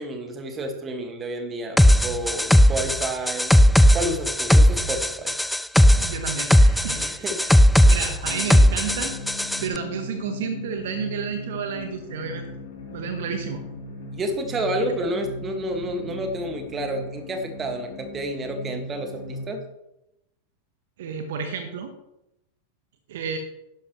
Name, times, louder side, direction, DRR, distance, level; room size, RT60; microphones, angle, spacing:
voice 1, 0.0-3.6 3.9-5.3 7.0-7.4 14.1-19.6, right 1 dB, 20° right, 5 dB, 1.9 m, -30 dB
sound 1, 1.8-9.6, equal, 5° left, 0.3 m, -17 dB
voice 2, 6.0-7.1 7.4-7.6 7.9-9.2 9.6-12.5 12.9-13.6 21.0-21.9 23.1-23.4, right 6 dB, 55° right, 7 dB, 1.1 m, -31 dB
sound 2, 8.2-19.4, left 2 dB, 60° left, 3.3 m, -38 dB
11.5 x 10.5 x 3.2 m, 0.87 s
figure-of-eight pair, 90°, 0 cm